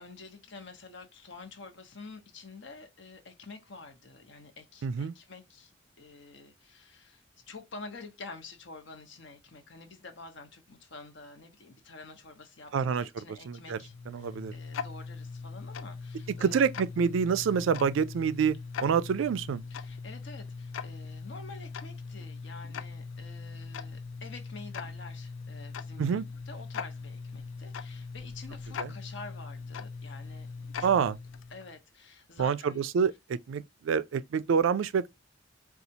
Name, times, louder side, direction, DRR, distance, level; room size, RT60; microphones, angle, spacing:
voice 1, 0.0-16.7 19.7-26.2 26.5-30.5 30.8-31.0 31.5-32.8, left 3 dB, 65° left, 0.9 m, -48 dB
voice 2, 4.8-5.1 12.7-13.8 14.1-14.5 16.4-19.6 26.0-26.3 28.8-28.9 30.8-31.1 32.4-35.1, right 6 dB, 80° right, 0.3 m, -27 dB
Tick-tock, 13.5-31.8, left 5 dB, 85° left, 0.4 m, -41 dB
4.2 x 2.4 x 2.7 m
head